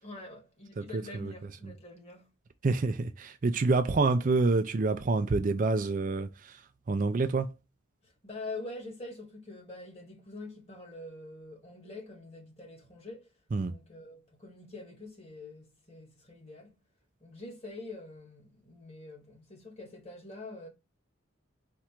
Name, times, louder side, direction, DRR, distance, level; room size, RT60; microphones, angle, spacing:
voice 1, 0.0-2.3 8.0-13.3 13.6-16.8 17.2-20.7, left 2 dB, 30° left, 1.7 m, -45 dB
voice 2, 0.8-1.3 2.6-6.6 6.9-7.5 13.5-13.7, right 3 dB, 40° right, 0.4 m, -27 dB
4.4 x 2.5 x 4.3 m
head